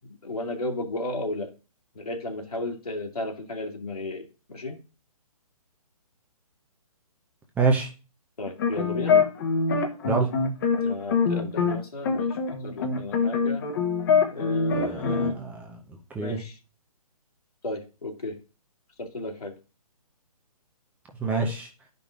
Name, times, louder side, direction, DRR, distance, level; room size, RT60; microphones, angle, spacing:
voice 1, 0.2-1.5 1.9-4.8 8.4-9.2 10.8-13.6 14.3-15.3 16.2-16.6 17.6-18.4 19.0-19.6, left 2 dB, 80° left, 1 dB, 2.2 m, -34 dB
voice 2, 7.6-7.9 10.0-10.3 14.7-15.8 16.1-16.4 21.2-21.7, right 4 dB, 10° right, 2 dB, 0.7 m, -26 dB
sound 1, 8.5-11.8 12.0-15.3, left 5 dB, 35° left, 1.1 m, -24 dB
12.0 x 5.3 x 2.5 m, 0.32 s
figure-of-eight pair, 140°, 19 cm